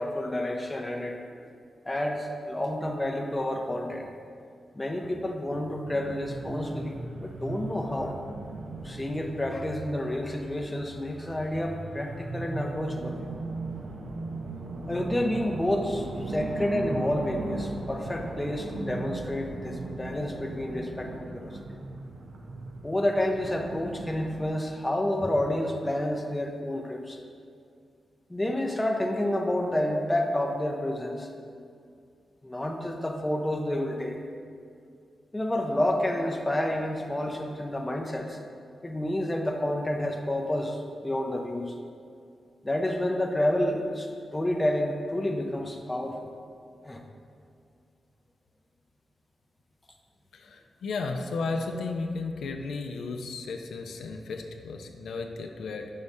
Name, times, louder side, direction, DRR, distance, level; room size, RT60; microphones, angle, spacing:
voice 1, 0.0-1.5 1.8-4.1 4.7-8.2 8.8-13.2 14.9-21.6 22.8-27.2 28.3-31.6 32.4-34.2 35.3-38.4 38.8-41.7 42.6-46.3 46.8-47.0, left 1 dB, 10° left, 2 dB, 0.5 m, -29 dB
sound 1, 5.8-24.5, right 2 dB, 60° right, 0.5 m, -38 dB
voice 2, 50.3-55.9, left 3 dB, 80° left, 4 dB, 0.4 m, -34 dB
5.4 x 3.5 x 5.3 m, 2.3 s
wide cardioid pair, 145°, 0 cm